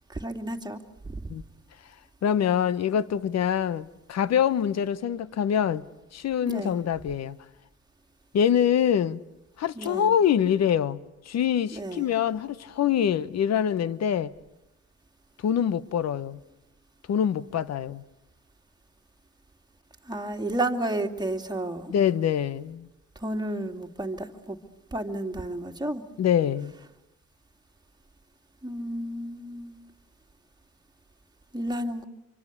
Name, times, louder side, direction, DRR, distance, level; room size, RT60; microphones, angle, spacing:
voice 1, 0.1-0.8 1.1-1.2 6.4-6.8 9.8-10.1 11.7-12.1 20.1-21.9 23.2-24.6 24.9-26.0 28.6-29.7 31.5-32.1, right 1 dB, 15° right, 2.6 m, -31 dB
voice 2, 2.2-5.9 6.1-7.4 8.3-9.2 9.6-14.3 15.4-16.4 17.1-18.0 21.9-22.9 26.2-26.7, left 9 dB, 60° left, 1.1 m, -25 dB
27.5 x 24.5 x 8.4 m
cardioid pair, 90°, 30 cm